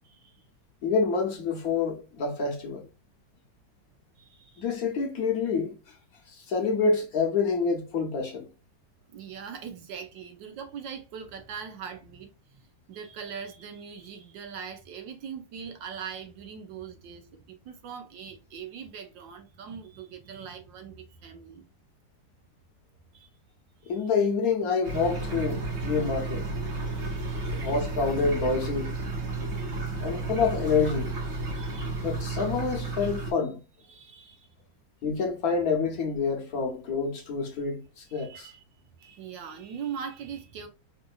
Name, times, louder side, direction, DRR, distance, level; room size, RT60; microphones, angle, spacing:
voice 1, 0.1-0.4 4.2-4.8 9.1-21.7 23.1-23.3 23.8-24.0 25.9-26.1 26.7-27.7 29.5-29.8 31.4-32.1 33.9-34.5 38.1-38.6 39.0-40.7, right 7 dB, 80° right, 1.5 m, -42 dB
voice 2, 0.8-2.9 4.6-5.7 6.3-8.5 23.9-26.4 27.1-27.2 27.5-28.9 30.0-31.1 32.0-33.6 35.0-38.5, left 5 dB, 60° left, 1.1 m, -27 dB
sound 1, 24.8-33.3, right 3 dB, 65° right, 2.3 m, -32 dB
4.5 x 2.6 x 2.3 m
omnidirectional pair, 2.0 m